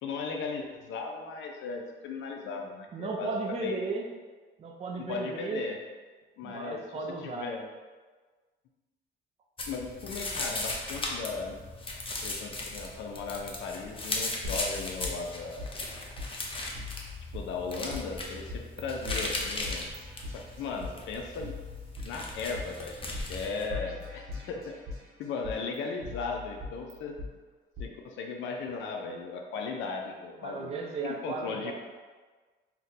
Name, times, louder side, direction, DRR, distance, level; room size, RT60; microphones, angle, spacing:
voice 1, 0.0-3.8 5.0-5.8 6.4-6.8 7.2-7.7 9.7-11.6 12.2-15.7 17.3-19.9 20.3-21.6 22.0-23.0 23.3-24.8 25.2-27.2 27.8-30.7 31.0-31.7, left 4 dB, 70° left, 1 dB, 0.4 m, -37 dB
voice 2, 2.9-4.1 4.6-5.6 6.4-7.5 30.4-31.7, right 4 dB, 30° right, 1 dB, 0.4 m, -35 dB
sound 1, 9.6-23.7, left 2 dB, 25° left, 0.6 m, -37 dB
sound 2, 14.4-16.3 16.7-18.0 18.5-18.8 19.1-20.9 21.4-22.9 23.1-23.2 23.7-25.1 25.4-27.3 27.8-27.9, left 3 dB, 55° right, 1.0 m, -40 dB
2.8 x 2.1 x 3.9 m, 1.4 s
cardioid pair, 90°, 20 cm